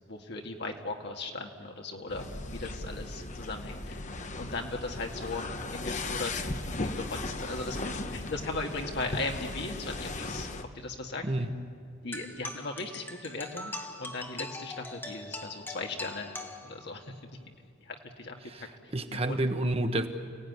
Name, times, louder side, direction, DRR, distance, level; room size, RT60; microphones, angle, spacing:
voice 1, 0.0-4.0 4.3-11.2 12.0-17.1 17.9-18.7 19.1-19.4, left 3 dB, 60° left, 2 dB, 2.1 m, -38 dB
sound 1, 2.1-10.6, left 2 dB, 40° left, 1.2 m, -37 dB
sound 2, 12.1-17.1, left 2 dB, 10° left, 1.3 m, -42 dB
voice 2, 18.4-20.1, right 1 dB, 30° right, 7 dB, 1.4 m, -30 dB
30.0 x 17.5 x 9.6 m, 2.2 s
head